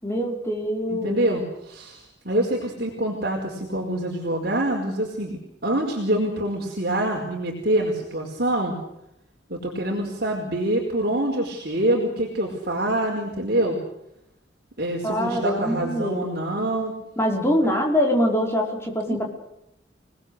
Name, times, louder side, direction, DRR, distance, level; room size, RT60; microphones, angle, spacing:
voice 1, 0.0-1.2 15.0-16.3 17.2-19.3, equal, 15° left, 1 dB, 5.4 m, -24 dB
voice 2, 0.9-8.8 9.5-13.8 14.8-16.9 19.1-19.2, right 1 dB, 55° right, 0 dB, 4.8 m, -25 dB
29.0 x 19.5 x 8.3 m, 0.82 s
head